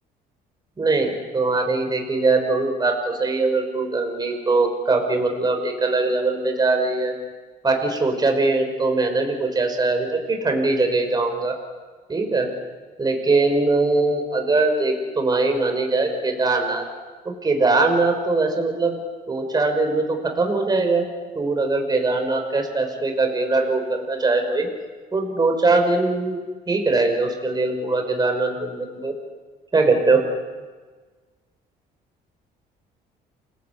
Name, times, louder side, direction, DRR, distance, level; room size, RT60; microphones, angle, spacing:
voice 1, 0.8-7.1 7.6-11.5 12.1-12.5 13.0-16.8 17.4-19.0 19.3-21.0 21.4-24.7 25.1-26.4 26.7-29.1 29.7-30.2, right 3 dB, 25° right, 4 dB, 5.4 m, -21 dB
29.0 x 21.5 x 8.6 m, 1.4 s
cardioid pair, 110°, 17 cm